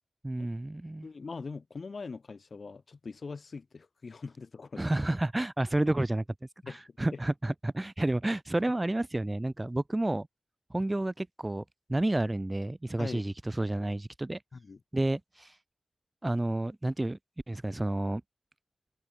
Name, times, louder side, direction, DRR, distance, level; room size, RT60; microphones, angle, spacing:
voice 1, 0.2-1.1 4.8-6.2 6.7-10.3 10.7-11.6 11.9-14.4 14.9-15.6 16.2-17.2 17.5-18.2, right 1 dB, 15° right, 0.7 m, -30 dB
voice 2, 1.0-5.0 6.6-6.8 13.0-13.2 14.5-14.8, left 4 dB, 50° left, 4.4 m, -42 dB
open air
wide cardioid pair, 130°, 0 cm